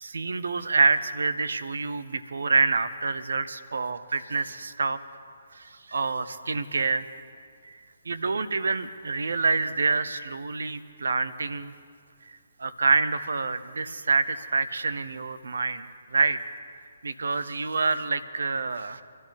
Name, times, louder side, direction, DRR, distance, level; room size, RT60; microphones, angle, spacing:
voice 1, 0.0-5.0 5.5-7.1 7.6-11.7 12.2-16.4 17.0-19.0, right 4 dB, 65° right, 12 dB, 0.9 m, -27 dB
26.5 x 13.5 x 3.6 m, 2.2 s
figure-of-eight pair, 135°, 0 cm